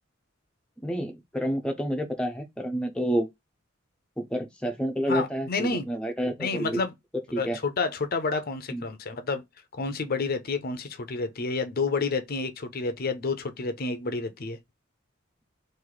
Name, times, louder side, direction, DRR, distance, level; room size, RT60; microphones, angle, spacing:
voice 1, 0.8-3.3 4.2-6.8 7.3-7.6 8.7-8.8, equal, 5° left, 0.6 m, -29 dB
voice 2, 5.1-5.9 6.4-6.9 7.4-9.4 9.7-14.6, left 4 dB, 50° left, 0.6 m, -29 dB
3.1 x 2.6 x 3.8 m
head